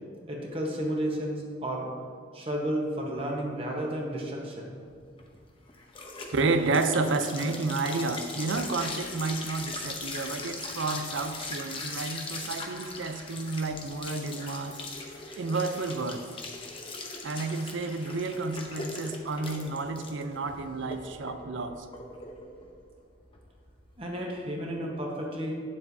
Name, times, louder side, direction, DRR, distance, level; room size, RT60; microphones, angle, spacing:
voice 1, 0.3-1.9 2.3-4.8 24.0-25.5, right 1 dB, 30° right, -1 dB, 1.1 m, -32 dB
sound 1, 4.9-24.0, left 3 dB, 30° left, 0.7 m, -40 dB
voice 2, 6.3-14.8 15.4-16.2 17.2-21.9, right 3 dB, 75° right, 9 dB, 0.5 m, -30 dB
9.6 x 7.2 x 2.7 m, 2.1 s
head